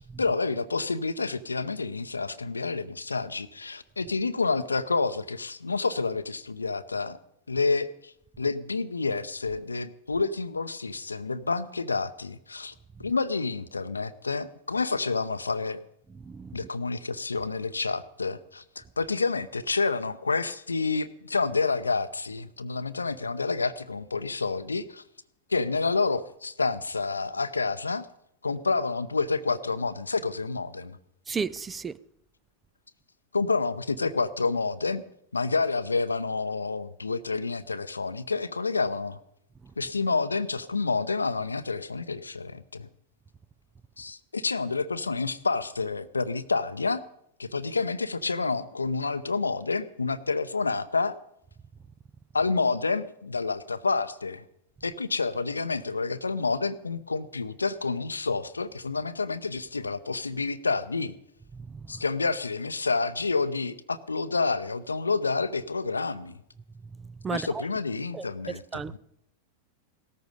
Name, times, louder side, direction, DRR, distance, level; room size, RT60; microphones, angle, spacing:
voice 1, 0.0-7.2 7.5-12.7 13.0-15.8 16.5-25.0 25.5-28.1 28.4-31.0 33.3-35.0 35.3-39.2 39.8-42.9 44.0-47.0 47.4-51.2 52.3-54.4 54.8-61.1 61.9-66.3 67.3-69.0, left 4 dB, 80° left, 0.7 m, -29 dB
voice 2, 16.2-16.6 31.3-31.9 61.5-61.8 67.2-67.5 68.1-69.0, right 5 dB, 15° right, 0.5 m, -34 dB
17.5 x 14.0 x 5.3 m
figure-of-eight pair, 90°, 0 cm